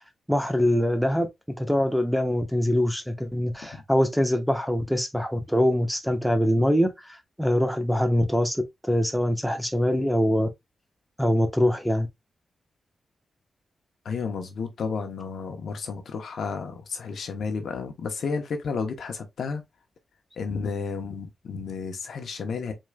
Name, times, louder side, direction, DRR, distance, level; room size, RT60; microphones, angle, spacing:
voice 1, 0.3-10.5 11.2-12.1, equal, ahead, 1.2 m, -24 dB
voice 2, 14.0-19.6 20.4-22.7, left 5 dB, 75° left, 1.0 m, -32 dB
4.7 x 3.8 x 2.3 m
cardioid pair, 70°, 0 cm